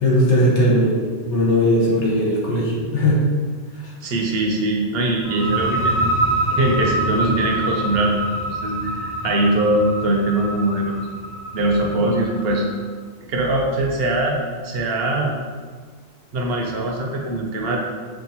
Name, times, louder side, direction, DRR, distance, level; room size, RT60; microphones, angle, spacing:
voice 1, 0.0-3.2 3.8-3.9, equal, 85° left, -4 dB, 1.2 m, -18 dB
voice 2, 4.0-6.1 6.5-8.2 8.5-11.0 11.5-12.6 13.3-14.4 14.6-15.3 16.3-17.8, right 1 dB, 65° right, 0 dB, 0.9 m, -21 dB
sound 1, 5.2-12.7, right 1 dB, 45° left, 1.1 m, -25 dB
5.4 x 2.4 x 2.8 m, 1.5 s
omnidirectional pair, 1.2 m